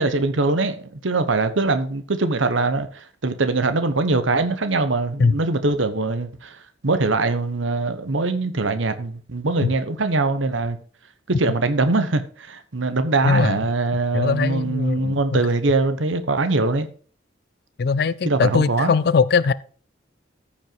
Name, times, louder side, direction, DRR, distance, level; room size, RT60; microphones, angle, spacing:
voice 1, 0.0-6.6 6.8-10.8 11.3-16.9 18.2-18.9, right 3 dB, 85° right, 1.0 m, -22 dB
voice 2, 13.2-13.6 14.1-15.4 17.8-19.5, left 5 dB, 55° left, 0.4 m, -20 dB
14.0 x 5.4 x 4.5 m
head